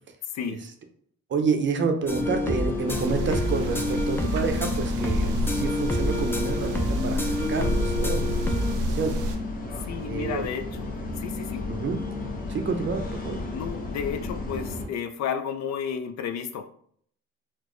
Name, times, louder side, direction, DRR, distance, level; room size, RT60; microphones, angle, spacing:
voice 1, 1.3-9.2 10.0-10.4 11.7-12.0 12.5-13.4, right 5 dB, 40° right, 6 dB, 0.6 m, -29 dB
sound 1, 2.1-14.9, left 3 dB, 30° left, 0.8 m, -34 dB
sound 2, 2.1-8.8, left 1 dB, 10° left, 0.4 m, -29 dB
sound 3, 2.9-9.4, equal, 85° right, 0.5 m, -30 dB
voice 2, 9.9-11.6 13.5-16.7, left 7 dB, 65° left, 7 dB, 0.5 m, -32 dB
4.2 x 2.0 x 3.0 m, 0.62 s
cardioid pair, 90°, 30 cm